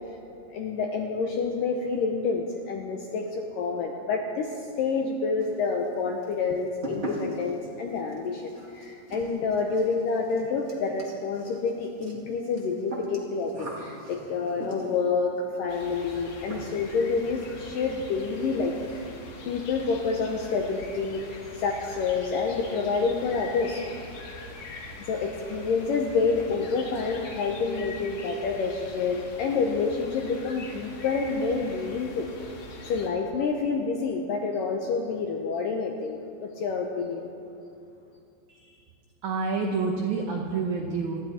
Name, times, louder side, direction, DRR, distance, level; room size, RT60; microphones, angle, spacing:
voice 1, 0.5-4.5 4.8-15.3 15.6-19.1 19.5-21.3 21.5-23.9 25.0-32.3 32.9-37.4, left 4 dB, 75° left, 1 dB, 2.0 m, -28 dB
sound 1, 5.4-5.9 6.2-15.1 16.1-16.2 16.5-17.0 17.3-17.4 17.7-17.8 18.1-18.3 18.6-19.1, right 1 dB, 30° right, 1.4 m, -40 dB
sound 2, 15.7-33.1, left 2 dB, 55° left, 2.8 m, -43 dB
voice 2, 38.5-38.8 39.2-41.2, right 4 dB, 85° right, 1 dB, 1.6 m, -28 dB
26.5 x 12.0 x 4.3 m, 2.5 s
omnidirectional pair, 5.0 m